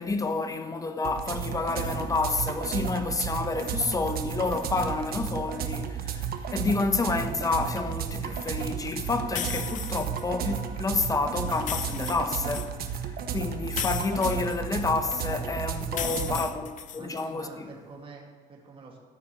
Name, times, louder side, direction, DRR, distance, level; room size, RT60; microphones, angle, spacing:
voice 1, 0.0-12.8 13.3-17.7, left 3 dB, 20° left, 1.1 m, -29 dB
sound 1, 1.0-16.4, right 8 dB, 65° right, 1.2 m, -33 dB
sound 2, 9.4-10.2 11.5-12.7 13.7-15.1 15.9-17.3, left 10 dB, 50° left, 0.5 m, -35 dB
voice 2, 16.0-16.5 16.9-19.0, right 4 dB, 30° right, 2.4 m, -47 dB
13.5 x 5.8 x 9.0 m
cardioid pair, 110°, 17 cm